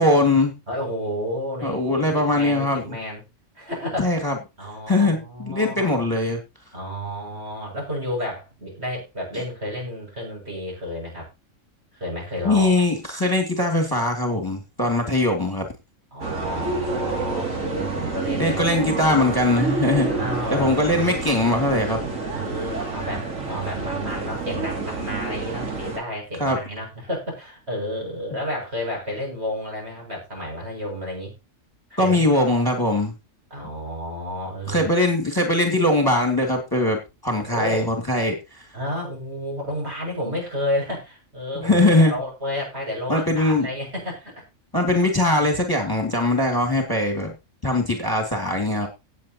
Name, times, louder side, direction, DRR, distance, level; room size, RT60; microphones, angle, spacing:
voice 1, 0.0-0.5 1.6-2.8 4.0-4.3 4.9-6.4 12.4-15.7 18.4-20.1 20.5-22.0 22.3-22.4 26.4-26.6 32.0-33.1 34.7-37.0 37.2-38.4 41.5-42.1 43.1-43.7 44.7-47.3 47.6-48.9, left 1 dB, 15° left, 3 dB, 2.5 m, -21 dB
voice 2, 0.7-3.2 3.6-4.3 4.6-5.9 6.7-11.3 11.9-12.7 16.1-19.1 20.1-21.1 22.3-31.3 31.9-32.2 33.5-34.8 37.4-37.9 38.7-44.4, equal, 50° right, -1 dB, 7.3 m, -31 dB
sound 1, 16.2-26.0, right 3 dB, 75° right, 3.1 m, -28 dB
18.0 x 7.5 x 2.9 m, 0.27 s
omnidirectional pair, 1.4 m